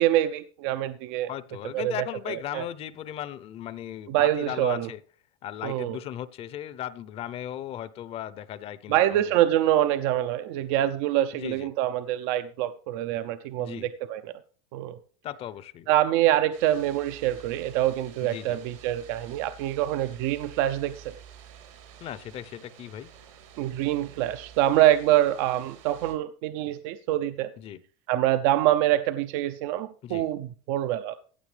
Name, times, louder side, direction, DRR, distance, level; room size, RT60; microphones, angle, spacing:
voice 1, 0.0-1.3 1.7-1.9 2.3-2.6 4.1-4.9 5.6-6.0 8.9-14.3 14.7-15.0 15.9-21.1 23.6-27.5 28.1-31.1, right 13 dB, 70° right, 11 dB, 0.7 m, -25 dB
voice 2, 1.3-5.0 5.4-9.4 11.3-11.7 13.6-13.9 15.2-15.9 18.2-18.6 22.0-23.1 27.6-27.8 30.0-30.3, left 11 dB, 40° left, 16 dB, 0.7 m, -37 dB
sound 1, 16.5-26.1, right 8 dB, 90° right, 4.3 m, -49 dB
15.5 x 7.7 x 3.3 m, 0.42 s
cardioid pair, 145°, 16 cm